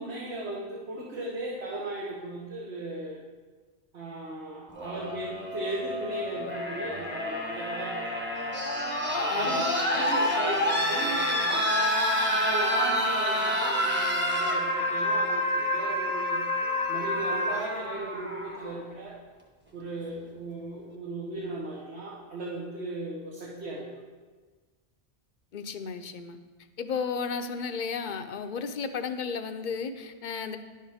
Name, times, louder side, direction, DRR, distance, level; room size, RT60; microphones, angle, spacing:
voice 1, 0.0-3.2 3.9-8.3 9.3-11.9 12.3-16.4 16.9-19.2 19.7-24.0, right 2 dB, 75° right, -4 dB, 1.4 m, -37 dB
sound 1, 4.8-18.7 20.0-20.1, left 1 dB, 10° right, 1.0 m, -28 dB
voice 2, 9.3-9.6 9.9-10.0 25.5-26.4 26.8-30.6, left 5 dB, 55° left, 8 dB, 0.6 m, -33 dB
10.5 x 7.4 x 3.5 m, 1.4 s
omnidirectional pair, 1.1 m